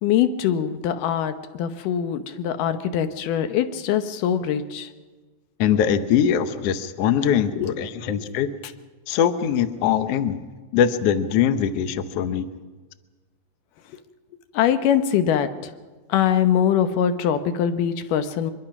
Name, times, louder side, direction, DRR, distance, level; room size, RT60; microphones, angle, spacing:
voice 1, 0.0-4.9 7.5-7.7 8.3-8.4 14.5-15.7 16.1-18.5, left 9 dB, 90° left, 10 dB, 2.6 m, -23 dB
voice 2, 5.6-8.5 9.1-10.4 10.7-12.5, left 8 dB, 65° left, 11 dB, 1.7 m, -22 dB
23.5 x 22.0 x 6.0 m, 1.3 s
omnidirectional pair, 3.6 m